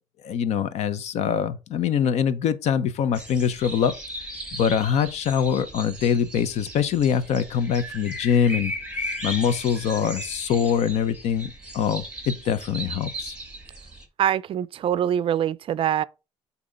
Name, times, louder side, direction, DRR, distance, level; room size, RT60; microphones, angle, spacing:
voice 1, 0.2-3.9 4.5-8.7 9.2-13.4, left 8 dB, 65° left, 0.8 m, -24 dB
sound 1, 3.1-14.0, right 1 dB, 10° right, 1.5 m, -37 dB
voice 2, 14.2-16.0, right 10 dB, 50° right, 0.4 m, -24 dB
8.3 x 2.8 x 5.1 m
cardioid pair, 115°, 12 cm